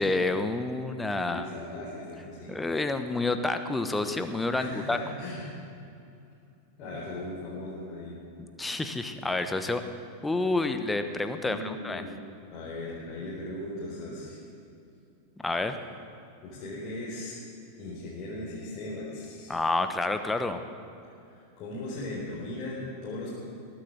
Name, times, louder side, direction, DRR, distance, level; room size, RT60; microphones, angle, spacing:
voice 1, 0.0-1.5 2.5-5.0 8.6-9.8 10.2-12.0 15.4-15.8 19.5-20.6, left 2 dB, 10° left, 8 dB, 1.1 m, -29 dB
voice 2, 1.3-2.5 4.5-5.5 6.8-8.2 11.4-12.1 12.5-14.4 15.7-15.8 16.4-17.3 17.8-19.6 21.2-23.3, left 1 dB, 35° left, -7 dB, 4.1 m, -38 dB
20.0 x 9.3 x 7.5 m, 2.6 s
figure-of-eight pair, 90°, 0 cm